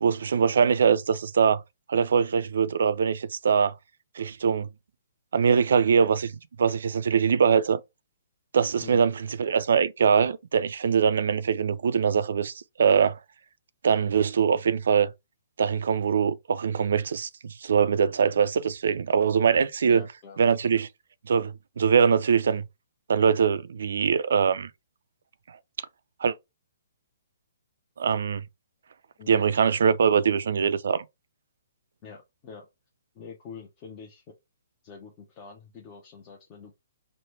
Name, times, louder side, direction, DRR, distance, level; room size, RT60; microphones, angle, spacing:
voice 1, 0.0-1.6 1.9-3.7 4.2-4.7 5.3-7.8 8.5-13.2 13.8-15.1 15.6-20.0 20.4-20.9 21.2-22.6 23.1-24.7 25.5-25.6 26.2-26.3 28.0-28.4 29.3-31.1, right 6 dB, 65° right, 0.3 m, -23 dB
voice 2, 19.8-20.4 29.2-29.4 32.0-32.7 33.1-34.2 34.8-36.7, left 5 dB, 30° left, 0.7 m, -45 dB
3.2 x 2.1 x 3.1 m
figure-of-eight pair, 125°, 0 cm